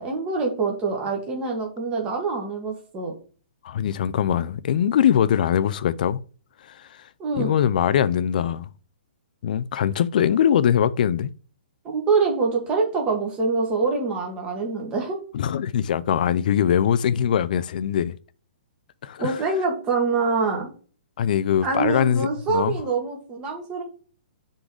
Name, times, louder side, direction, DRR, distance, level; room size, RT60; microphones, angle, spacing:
voice 1, 0.0-3.1 7.2-7.5 11.8-15.2 19.2-20.7 21.6-23.8, right 4 dB, 15° right, 1.6 m, -25 dB
voice 2, 3.6-6.2 7.4-8.7 9.4-11.3 15.3-18.2 19.0-19.4 21.2-22.8, left 9 dB, 45° left, 0.4 m, -22 dB
6.1 x 3.9 x 4.8 m
hypercardioid pair, 165°, 6 cm